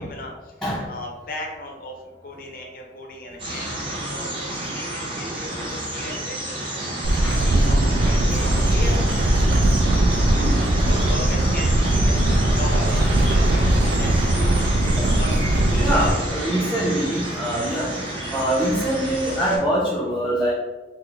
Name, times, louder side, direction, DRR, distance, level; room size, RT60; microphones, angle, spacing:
voice 1, 0.0-0.6 0.9-9.4 10.8-17.2, left 1 dB, 50° left, -1 dB, 0.6 m, -37 dB
sound 1, 3.4-19.6, right 1 dB, 30° right, 0.8 m, -29 dB
sound 2, 7.0-16.1, right 1 dB, 75° right, 0.4 m, -19 dB
voice 2, 7.1-8.0 8.2-8.4 10.4-10.6 15.0-15.2 15.8-17.9 18.3-20.5, right 1 dB, 5° left, -8 dB, 0.5 m, -24 dB
3.8 x 2.0 x 3.2 m, 1.2 s
head